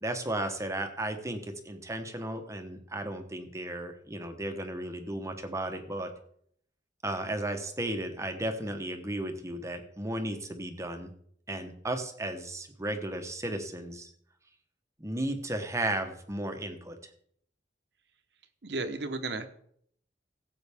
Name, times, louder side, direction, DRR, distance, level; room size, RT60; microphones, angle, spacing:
voice 1, 0.0-6.1 7.0-11.1 11.5-14.1 15.0-17.0, right 1 dB, 15° right, 6 dB, 1.0 m, -34 dB
voice 2, 18.6-19.5, right 3 dB, 70° right, 8 dB, 1.1 m, -33 dB
17.0 x 7.8 x 3.5 m, 0.66 s
head